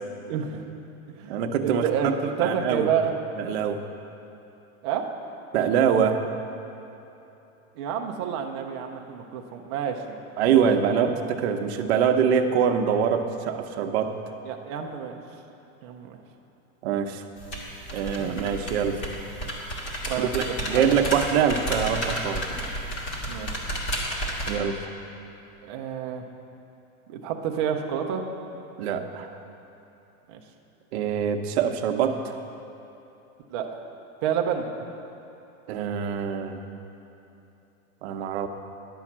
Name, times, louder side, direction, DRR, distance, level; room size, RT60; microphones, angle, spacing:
voice 1, 0.3-0.6 1.2-3.1 4.8-5.1 7.8-10.2 14.4-15.1 15.8-16.2 18.2-18.3 20.1-20.3 20.7-20.8 23.3-23.5 25.6-26.2 27.1-28.2 30.3-30.4 33.5-33.8 34.2-34.7, right 8 dB, 20° right, 2 dB, 0.3 m, -29 dB
voice 2, 1.3-2.1 2.4-2.9 3.4-3.8 5.5-6.2 10.4-14.1 16.8-17.2 17.9-19.0 20.2-22.4 24.5-24.9 28.8-29.3 30.9-32.3 35.7-36.6 38.0-38.5, right 7 dB, 50° right, 5 dB, 0.8 m, -24 dB
sound 1, 17.4-24.5, equal, 25° left, 1.6 m, -32 dB
11.0 x 5.6 x 7.3 m, 3.0 s
supercardioid pair, 155°, 42 cm